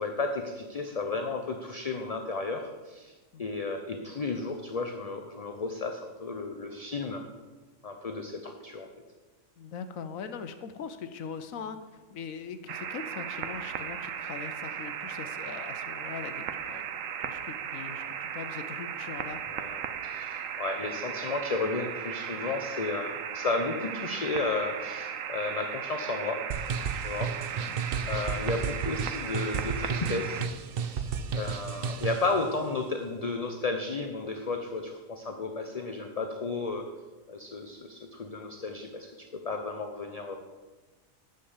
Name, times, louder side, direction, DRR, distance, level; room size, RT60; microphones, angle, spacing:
voice 1, 0.0-7.2 7.8-8.9 19.5-26.4 26.9-27.3 28.1-30.5 30.8-36.8 37.3-39.1 39.3-40.4, left 3 dB, 40° left, 5 dB, 0.6 m, -33 dB
voice 2, 9.6-11.8 12.1-19.4 27.4-27.8, left 6 dB, 80° left, 10 dB, 1.2 m, -41 dB
sound 1, 12.7-30.5, right 8 dB, 70° right, 1.1 m, -36 dB
sound 2, 26.5-32.3, right 6 dB, 55° right, 0.7 m, -33 dB
10.0 x 6.7 x 7.2 m, 1.3 s
omnidirectional pair, 1.4 m